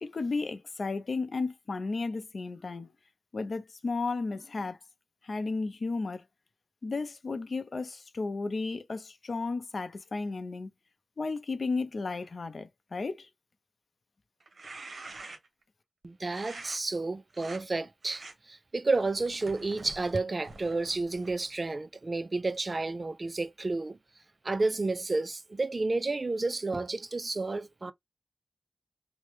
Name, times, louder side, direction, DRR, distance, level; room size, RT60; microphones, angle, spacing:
voice 1, 0.0-2.9 3.3-4.8 5.2-6.2 6.8-10.7 11.2-13.3, left 3 dB, 55° left, 0.5 m, -33 dB
sound 1, 14.4-15.6 16.3-16.8 17.3-17.6 18.0-18.3 19.0-21.5, right 3 dB, 60° right, 0.8 m, -47 dB
voice 2, 16.0-24.0 24.4-27.9, right 3 dB, 40° right, 0.3 m, -31 dB
3.0 x 2.1 x 3.1 m
wide cardioid pair, 80°, 0 cm